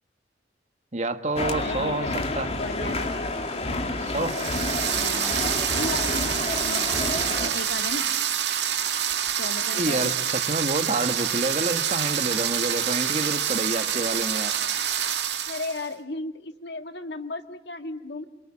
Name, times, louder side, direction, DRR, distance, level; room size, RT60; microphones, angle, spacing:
voice 1, 0.9-2.5 4.1-4.3 9.7-14.5, right 2 dB, 40° right, 8 dB, 1.5 m, -28 dB
sound 1, 1.4-7.5, left 2 dB, 35° left, 2.4 m, -29 dB
voice 2, 1.6-4.6 5.0-5.4 5.7-6.3 6.6-8.1 9.4-10.1 15.4-18.2, left 2 dB, 75° left, 8 dB, 1.6 m, -36 dB
sound 2, 4.1-15.9, right 9 dB, 80° right, 1.9 m, -27 dB
28.0 x 24.0 x 8.7 m, 0.93 s
head